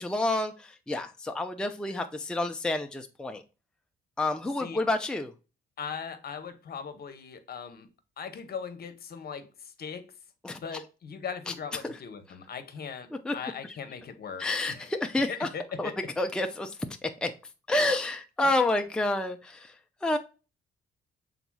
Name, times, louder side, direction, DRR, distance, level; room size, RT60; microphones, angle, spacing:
voice 1, 0.0-3.4 4.2-5.3 10.4-10.6 11.8-11.9 13.2-13.3 14.4-15.5 15.8-15.9 16.2-16.7 17.0-17.3 17.7-19.7 20.0-20.2, left 2 dB, 5° left, 0.5 m, -29 dB
voice 2, 5.8-7.9 8.2-10.0 10.6-14.9 15.3-16.0 18.4-18.5, left 6 dB, 50° left, 0.9 m, -39 dB
5.9 x 4.0 x 2.2 m
cardioid pair, 90°, 20 cm